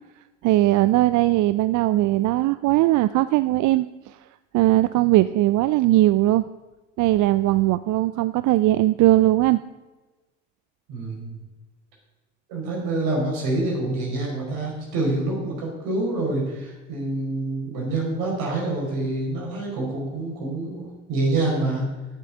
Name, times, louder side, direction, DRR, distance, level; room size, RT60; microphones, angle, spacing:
voice 1, 0.4-4.2 4.5-6.4 7.0-9.6, right 16 dB, 55° right, 14 dB, 0.5 m, -19 dB
voice 2, 10.9-11.4 12.5-21.9, right 2 dB, 70° right, -2 dB, 5.1 m, -26 dB
10.5 x 8.3 x 7.2 m, 1.2 s
hypercardioid pair, 65°, 37 cm